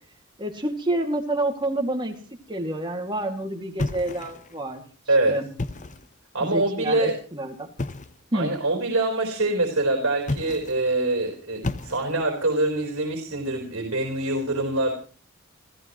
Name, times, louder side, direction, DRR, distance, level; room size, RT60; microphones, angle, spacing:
voice 1, 0.4-2.2 2.5-4.8 5.3-5.5 6.4-7.7 8.3-8.5, right 1 dB, 20° right, 3 dB, 2.4 m, -28 dB
sound 1, 3.8-4.6 5.4-6.1 7.8-8.2 10.2-10.9 11.6-12.3, left 2 dB, 35° left, 0.9 m, -32 dB
voice 2, 6.3-7.1 8.3-14.9, right 2 dB, 65° right, 2 dB, 4.5 m, -24 dB
30.0 x 14.5 x 3.1 m, 0.39 s
head